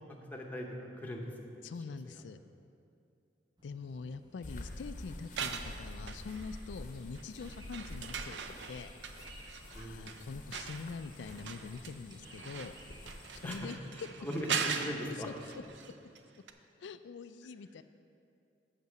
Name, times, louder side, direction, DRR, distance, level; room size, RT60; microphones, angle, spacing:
voice 1, 0.0-1.6 1.9-2.0 9.7-10.2 13.4-15.3, equal, 10° left, 0 dB, 0.9 m, -40 dB
voice 2, 1.6-2.4 3.6-8.9 9.7-12.8 13.4-13.8 16.8-17.8, left 5 dB, 90° left, 12 dB, 0.4 m, -44 dB
sound 1, 3.6-15.7, right 1 dB, 25° right, 1.0 m, -59 dB
sound 2, 4.4-13.6, left 1 dB, 45° left, 0.8 m, -48 dB
sound 3, 5.2-6.8 7.1-16.2 16.5-16.6, right 6 dB, 85° right, 0.5 m, -41 dB
8.2 x 6.0 x 6.6 m, 2.5 s
head